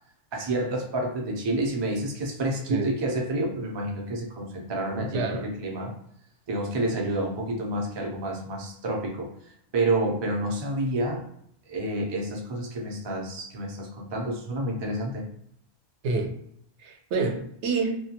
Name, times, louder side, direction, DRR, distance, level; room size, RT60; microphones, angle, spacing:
voice 1, 0.3-5.9 6.5-9.3 9.7-11.2 11.7-15.3, right 1 dB, 40° right, 0 dB, 0.4 m, -29 dB
voice 2, 4.9-5.4 16.0-16.3 16.8-18.0, right 3 dB, 90° right, 3 dB, 0.9 m, -28 dB
2.2 x 2.2 x 2.8 m, 0.71 s
omnidirectional pair, 1.1 m